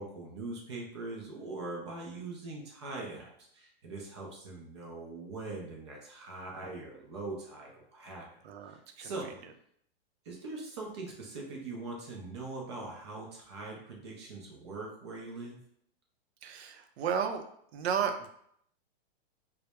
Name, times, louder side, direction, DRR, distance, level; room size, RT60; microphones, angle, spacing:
voice 1, 0.0-8.3 8.7-9.3 10.3-15.6, right 3 dB, 30° right, -1 dB, 0.4 m, -42 dB
voice 2, 8.4-9.1 16.4-17.4 17.7-18.3, right 7 dB, 85° right, 7 dB, 0.5 m, -33 dB
2.2 x 2.1 x 2.8 m, 0.68 s
supercardioid pair, 170°, 31 cm